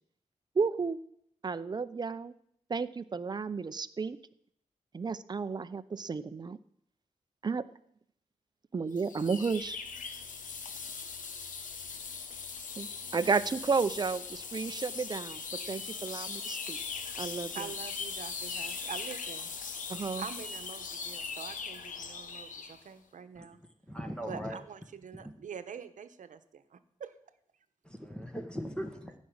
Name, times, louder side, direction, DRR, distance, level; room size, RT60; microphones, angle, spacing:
voice 1, 0.5-1.0 1.4-2.3 2.7-4.2 4.9-6.6 7.4-7.7 8.7-9.8 12.8-15.4 15.7-16.8 17.2-17.7 19.9-20.2, right 5 dB, 35° right, 13 dB, 0.6 m, -32 dB
sound 1, 9.0-22.8, left 5 dB, 85° left, 1.3 m, -40 dB
voice 2, 17.5-19.5 20.2-23.6 24.2-27.1, right 7 dB, 75° right, 10 dB, 1.0 m, -45 dB
voice 3, 23.9-24.6 25.1-25.3 27.8-29.1, equal, 5° left, 5 dB, 1.4 m, -39 dB
15.0 x 6.3 x 9.6 m, 0.70 s
wide cardioid pair, 125°, 13 cm